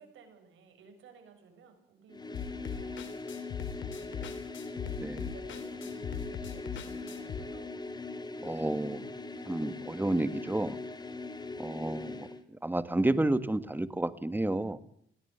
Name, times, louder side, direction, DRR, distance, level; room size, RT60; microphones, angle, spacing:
voice 1, 0.0-4.4 5.0-7.7, right 5 dB, 80° right, 5 dB, 7.1 m, -56 dB
sound 1, 2.1-12.4, left 3 dB, 20° left, 2.5 m, -41 dB
sound 2, 2.3-7.4, left 8 dB, 70° left, 3.4 m, -40 dB
voice 2, 5.0-5.3 8.4-9.1 9.4-10.8 11.6-14.8, right 2 dB, 10° right, 13 dB, 1.6 m, -31 dB
21.5 x 17.5 x 8.1 m, 0.66 s
cardioid pair, 90°, 20 cm